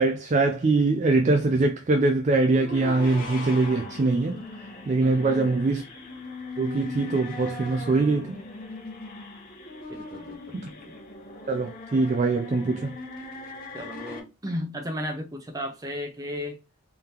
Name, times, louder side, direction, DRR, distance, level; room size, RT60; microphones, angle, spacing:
voice 1, 0.0-4.4 4.9-5.8 6.6-8.4 10.5-10.7 11.5-13.0, right 3 dB, 35° right, 0.3 m, -23 dB
sound 1, 2.4-14.2, left 3 dB, 40° left, 1.0 m, -39 dB
voice 2, 5.0-5.6 9.9-10.9 13.7-16.6, equal, 15° right, 0.8 m, -35 dB
3.8 x 3.4 x 2.8 m
head